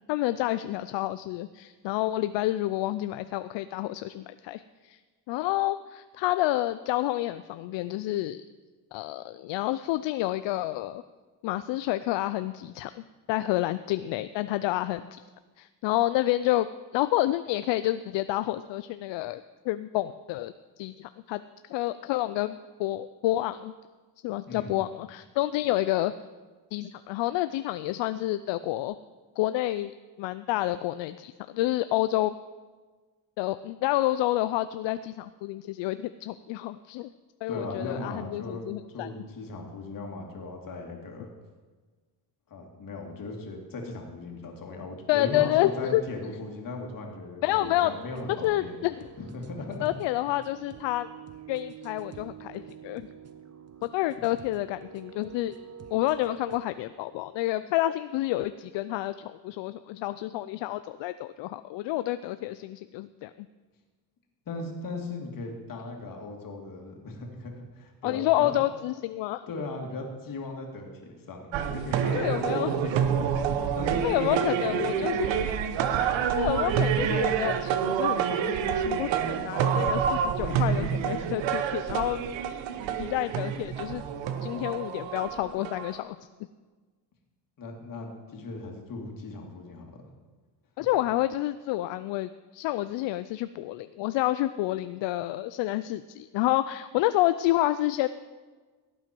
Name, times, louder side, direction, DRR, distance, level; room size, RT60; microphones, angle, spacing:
voice 1, 0.1-5.0 5.3-8.4 8.9-11.0 11.4-13.0 13.3-15.2 15.6-16.7 16.9-20.5 20.8-23.7 24.2-26.1 26.7-29.0 29.4-29.9 30.2-32.3 33.4-37.1 37.4-39.1 45.1-46.0 47.4-47.9 48.4-48.9 49.8-51.1 51.5-53.1 53.8-55.6 55.9-63.5 68.0-69.5 72.1-72.7 74.0-75.5 76.0-82.2 83.0-84.1 84.4-86.2 90.8-98.1, left 15 dB, 75° left, 13 dB, 0.5 m, -29 dB
voice 2, 24.5-24.8 37.5-38.7 38.9-41.3 42.5-48.7 49.2-49.9 64.5-68.6 69.5-75.4 80.4-81.2 87.6-90.0, left 2 dB, 50° left, 1 dB, 2.5 m, -38 dB
sound 1, 47.6-56.6, right 7 dB, 35° right, 0.9 m, -47 dB
sound 2, 71.5-86.0, right 8 dB, 85° right, 1.1 m, -28 dB
17.0 x 9.0 x 4.5 m, 1.4 s
cardioid pair, 115°, 44 cm